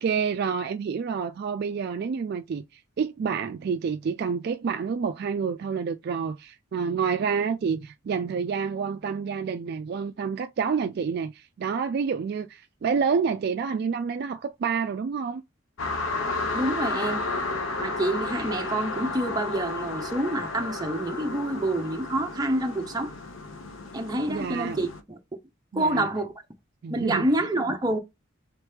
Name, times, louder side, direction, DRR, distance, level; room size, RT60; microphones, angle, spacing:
voice 1, 0.0-15.4 24.3-24.8 25.7-26.1 26.8-27.3, right 6 dB, 50° right, 0.3 m, -28 dB
sound 1, 15.8-25.0, left 3 dB, 75° left, 0.7 m, -32 dB
voice 2, 16.5-17.3 17.8-23.1 23.9-25.2 25.8-26.3 26.9-28.0, right 1 dB, 20° right, 0.7 m, -27 dB
3.6 x 3.0 x 3.4 m
head